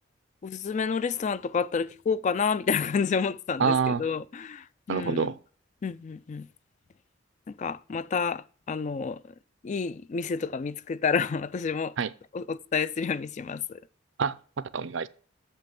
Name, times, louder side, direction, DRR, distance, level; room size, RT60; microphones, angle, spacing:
voice 1, 0.4-5.3 5.8-6.5 7.6-9.2 9.6-11.9 12.3-13.8, left 5 dB, 40° left, 0.3 m, -29 dB
voice 2, 3.6-4.0 4.9-5.4 12.0-12.1 14.2-15.1, right 5 dB, 70° right, 0.5 m, -27 dB
7.4 x 5.4 x 7.5 m
head